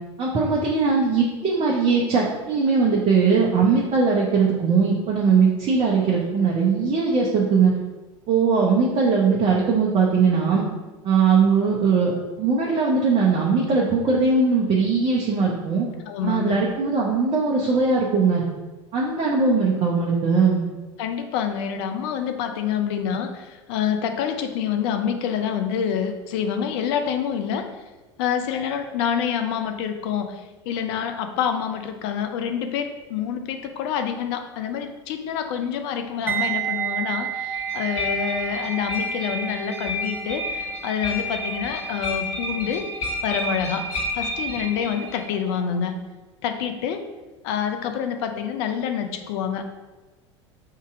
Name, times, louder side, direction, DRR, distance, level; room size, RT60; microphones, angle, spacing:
voice 1, 0.2-7.7 8.3-10.6 11.0-15.9 16.2-18.4 18.9-20.6, right 5 dB, 35° right, -3 dB, 0.8 m, -20 dB
voice 2, 16.1-16.6 21.0-27.7 28.2-42.9 43.2-43.9 44.1-45.9 46.4-47.0 47.4-49.7, left 8 dB, 60° left, 6 dB, 0.6 m, -27 dB
sound 1, 36.3-45.2 45.5-45.8, right 9 dB, 15° right, 0.4 m, -32 dB
sound 2, 37.5-45.2, left 1 dB, 40° left, 1.4 m, -31 dB
3.7 x 2.8 x 4.7 m, 1.2 s
hypercardioid pair, 75°, 16 cm